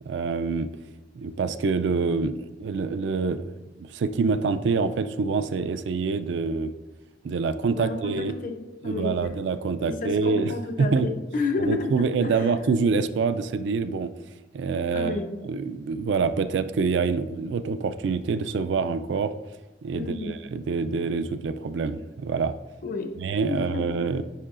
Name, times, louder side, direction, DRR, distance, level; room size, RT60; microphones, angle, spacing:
voice 1, 0.1-0.7 1.1-3.4 3.8-6.7 7.2-8.4 8.8-11.1 11.6-14.1 14.5-15.2 15.4-19.3 19.8-22.5 23.2-24.2, right 4 dB, 70° right, 11 dB, 0.3 m, -26 dB
voice 2, 7.7-9.2 9.8-12.4 14.9-15.3 20.0-20.4 22.8-23.1 23.5-23.9, left 3 dB, 50° left, 6 dB, 0.7 m, -31 dB
9.9 x 4.7 x 2.5 m, 1.1 s
head